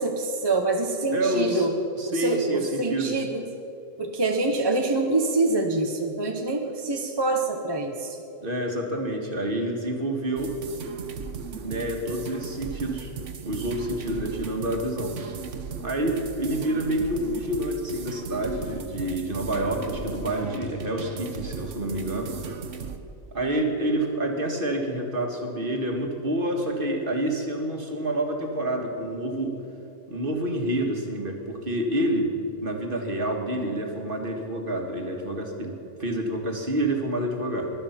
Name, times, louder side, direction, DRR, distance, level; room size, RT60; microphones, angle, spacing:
voice 1, 0.0-1.7 2.1-3.4 4.0-8.2, right 2 dB, 20° right, 3 dB, 0.8 m, -25 dB
voice 2, 1.1-1.7 2.0-3.2 8.4-10.6 11.6-13.1 13.4-15.2 15.8-22.4 23.3-29.6 30.1-32.3 32.6-37.7, right 1 dB, 40° right, 2 dB, 2.0 m, -28 dB
sound 1, 10.4-23.0, right 6 dB, 65° right, 1.3 m, -37 dB
20.0 x 12.0 x 5.8 m, 2.8 s
omnidirectional pair, 1.4 m